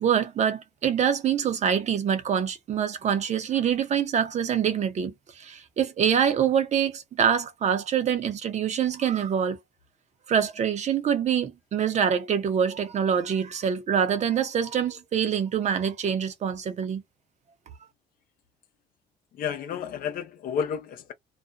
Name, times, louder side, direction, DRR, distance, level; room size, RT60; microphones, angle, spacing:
voice 1, 0.0-9.6 10.3-17.0, right 8 dB, 45° right, 0.7 m, -25 dB
voice 2, 19.3-21.1, left 7 dB, 60° left, 0.6 m, -31 dB
2.4 x 2.1 x 2.5 m
cardioid pair, 110°, 17 cm